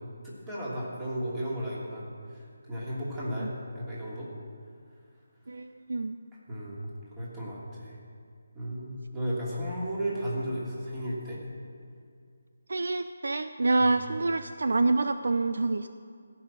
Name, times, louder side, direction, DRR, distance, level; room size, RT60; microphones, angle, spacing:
voice 1, 0.2-2.1 2.3-4.3 6.5-8.0 8.5-11.4 13.8-13.9, equal, 15° right, -7 dB, 2.8 m, -34 dB
voice 2, 5.5-6.2 12.7-15.9, right 3 dB, 60° right, 10 dB, 0.4 m, -27 dB
14.5 x 6.2 x 8.7 m, 2.3 s
figure-of-eight pair, 150°, 0 cm